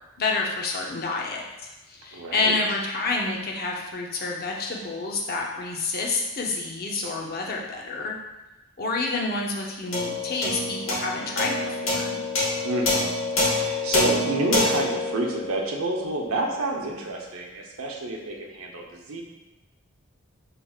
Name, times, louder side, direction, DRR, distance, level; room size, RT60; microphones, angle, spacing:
voice 1, 0.2-8.2 8.8-12.2, left 3 dB, 45° left, -1 dB, 0.6 m, -29 dB
voice 2, 2.1-2.6 12.6-19.2, right 2 dB, 85° right, 0 dB, 0.7 m, -29 dB
sound 1, 9.9-16.5, left 2 dB, 60° left, 1.1 m, -27 dB
5.7 x 3.2 x 2.3 m, 1.0 s
head